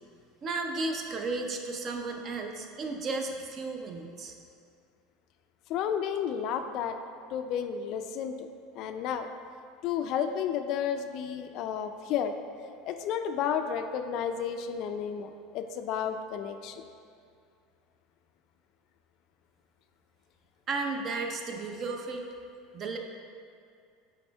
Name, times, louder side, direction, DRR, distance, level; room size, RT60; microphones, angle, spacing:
voice 1, 0.4-4.3 20.7-22.2 22.7-23.0, right 3 dB, 35° right, 4 dB, 0.6 m, -34 dB
voice 2, 5.7-7.0 7.3-8.5 8.7-9.3 9.8-12.3 12.8-16.8, left 8 dB, 55° left, 8 dB, 0.3 m, -32 dB
8.4 x 3.5 x 3.4 m, 2.3 s
supercardioid pair, 125°, 0 cm